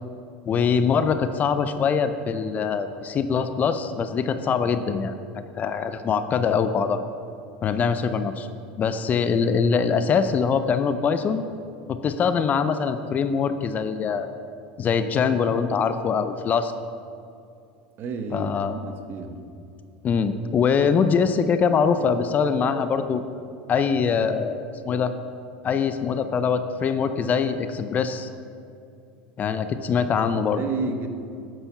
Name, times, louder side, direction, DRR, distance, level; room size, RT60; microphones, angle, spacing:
voice 1, 0.5-7.0 7.6-8.5 8.8-11.4 11.9-14.3 14.8-16.7 18.3-18.7 20.0-23.2 23.7-25.1 25.6-28.3 29.4-30.6, left 6 dB, 30° left, 10 dB, 0.5 m, -23 dB
voice 2, 18.0-19.5 30.6-31.1, right 4 dB, 45° right, 6 dB, 1.0 m, -31 dB
9.0 x 6.8 x 5.8 m, 2.5 s
supercardioid pair, 115°, 5 cm